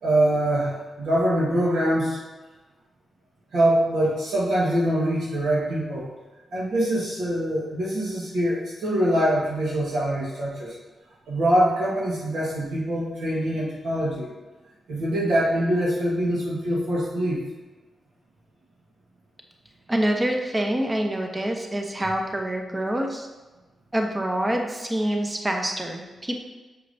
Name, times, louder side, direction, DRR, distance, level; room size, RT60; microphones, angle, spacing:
voice 1, 0.0-2.2 3.5-6.1 6.5-10.7 11.3-14.3 14.9-17.4, right 1 dB, 80° right, -5 dB, 1.5 m, -24 dB
voice 2, 19.9-23.3 23.9-26.4, right 1 dB, 25° right, 2 dB, 0.9 m, -26 dB
6.9 x 5.0 x 2.7 m, 1.2 s
cardioid pair, 55°, 0 cm